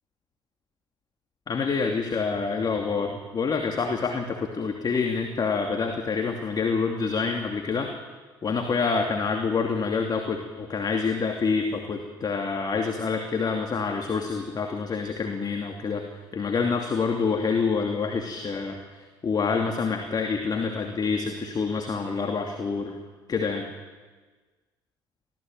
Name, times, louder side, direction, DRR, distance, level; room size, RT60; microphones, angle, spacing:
voice 1, 1.5-7.9 8.4-16.1 16.3-18.8 19.2-23.0 23.3-23.6, left 5 dB, 40° left, 3 dB, 2.7 m, -27 dB
24.0 x 16.5 x 9.2 m, 1.4 s
hypercardioid pair, 55°, 11 cm